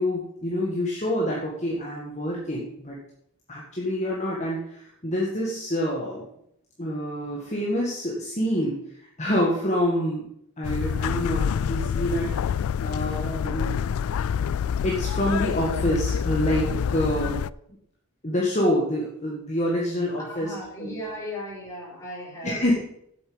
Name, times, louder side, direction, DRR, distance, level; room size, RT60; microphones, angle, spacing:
voice 1, 0.0-3.0 3.5-6.2 6.8-8.8 9.2-10.3 10.6-13.8 14.8-17.4 18.2-20.5 20.8-21.0 22.4-22.8, equal, 30° left, -3 dB, 1.8 m, -27 dB
sound 1, 10.6-17.5, left 7 dB, 80° left, 0.3 m, -27 dB
voice 2, 20.2-22.8, equal, 15° left, -5 dB, 4.2 m, -37 dB
8.2 x 7.9 x 8.0 m, 0.73 s
head